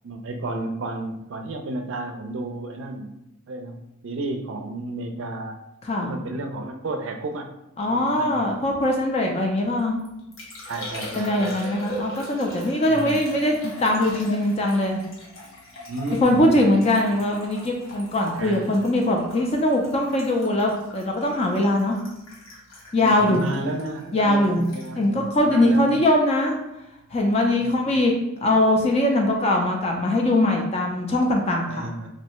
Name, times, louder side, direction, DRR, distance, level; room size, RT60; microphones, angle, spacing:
voice 1, 0.0-3.2 3.5-5.6 6.0-7.5 7.8-8.5 10.7-11.8 12.9-13.3 15.9-16.8 18.4-18.8 23.0-26.0 27.6-28.0 31.7-32.1, right 2 dB, 65° right, 4 dB, 0.4 m, -32 dB
voice 2, 7.8-10.0 11.1-15.0 16.2-22.0 22.9-23.4 24.1-24.7 25.0-26.6 27.1-28.1 28.4-31.9, left 1 dB, 30° left, 1 dB, 0.4 m, -21 dB
Liquid, 9.6-26.2 26.5-27.0, left 1 dB, 75° left, 1.0 m, -41 dB
3.1 x 2.6 x 2.9 m, 0.92 s
head